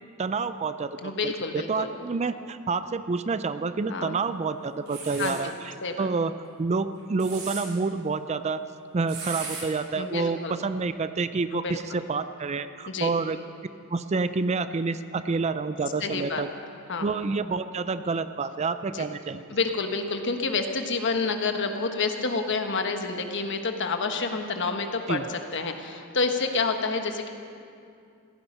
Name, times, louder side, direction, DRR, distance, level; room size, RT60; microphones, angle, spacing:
voice 1, 0.2-6.3 6.6-8.6 8.9-13.4 13.9-16.5 17.0-19.4 25.1-25.2, right 4 dB, 30° right, 12 dB, 0.4 m, -28 dB
voice 2, 1.0-1.9 3.9-4.2 5.2-5.4 5.8-6.1 10.0-10.5 11.5-11.8 12.9-13.1 16.0-16.4 16.9-17.1 18.9-19.1 19.5-27.3, left 4 dB, 55° left, 5 dB, 1.3 m, -28 dB
sound 1, 4.9-5.4 7.0-7.6 9.1-9.6, right 4 dB, 75° right, 4.5 m, -36 dB
16.0 x 15.0 x 5.4 m, 2.5 s
head